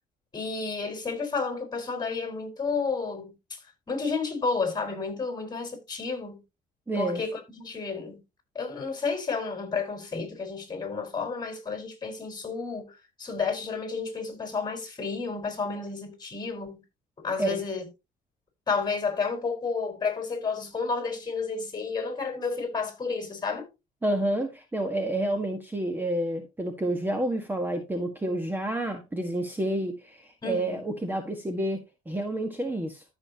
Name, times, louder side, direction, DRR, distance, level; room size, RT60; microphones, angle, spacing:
voice 1, 0.3-3.6 3.9-6.4 6.9-8.2 8.5-16.8 17.2-17.8 18.7-23.7 30.4-30.8, left 4 dB, 25° left, 4.6 m, -31 dB
voice 2, 6.9-7.2 17.4-17.6 24.0-31.8 32.0-33.0, right 1 dB, 10° right, 1.5 m, -29 dB
13.5 x 6.6 x 2.9 m
cardioid pair, 110°, 17 cm